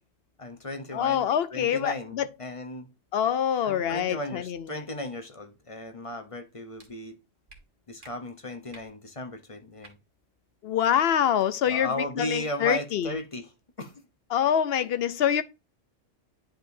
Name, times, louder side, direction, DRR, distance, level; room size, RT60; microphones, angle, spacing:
voice 1, 0.4-2.9 3.6-7.1 7.9-10.0 11.7-13.5 13.8-13.9, left 1 dB, 30° left, 0.9 m, -36 dB
voice 2, 0.9-2.3 3.1-4.8 10.6-13.2 14.3-15.4, left 9 dB, 60° left, 0.8 m, -25 dB
sound 1, 6.8-6.9 7.5-7.6 8.0-8.1 8.7-8.9 9.8-9.9 10.8-10.9 11.3-11.5, right 3 dB, 45° right, 1.5 m, -51 dB
10.0 x 4.9 x 2.6 m
omnidirectional pair, 1.3 m